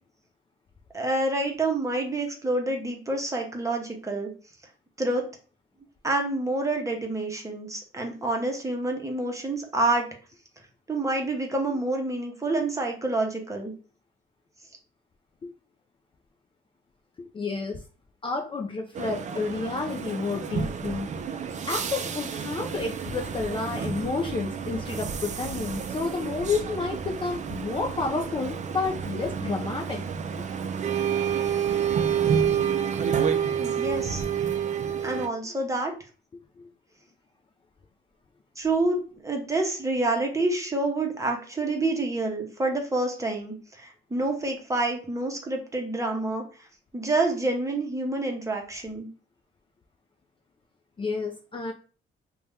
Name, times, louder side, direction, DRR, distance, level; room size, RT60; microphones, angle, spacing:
voice 1, 0.9-4.3 5.0-5.2 6.0-10.1 10.9-13.7 33.6-34.2 35.0-35.9 38.6-39.0 39.2-46.4 46.9-49.1, right 2 dB, 15° right, 1 dB, 0.8 m, -28 dB
voice 2, 17.2-17.8 18.2-21.1 21.6-30.0 33.5-33.6 36.6-36.7 51.0-51.7, left 4 dB, 25° left, 2 dB, 0.4 m, -30 dB
sound 1, 18.9-35.3, right 7 dB, 40° right, 0.4 m, -29 dB
2.6 x 2.3 x 3.2 m, 0.38 s
cardioid pair, 90°, 20 cm